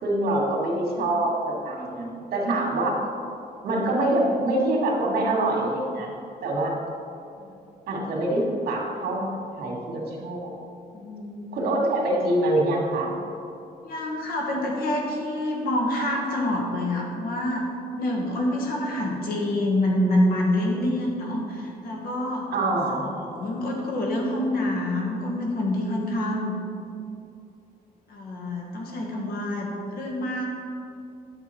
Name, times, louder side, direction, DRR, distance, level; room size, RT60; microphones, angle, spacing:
voice 1, 0.0-3.0 3.6-6.1 6.4-6.7 7.9-10.5 11.5-13.1 22.5-23.1, right 1 dB, 70° right, -2 dB, 2.3 m, -25 dB
voice 2, 10.9-11.6 13.8-17.7 18.0-22.5 22.9-26.6 28.1-30.5, left 1 dB, 70° left, -1 dB, 2.0 m, -27 dB
10.5 x 7.2 x 4.5 m, 2.6 s
cardioid pair, 160°, 16 cm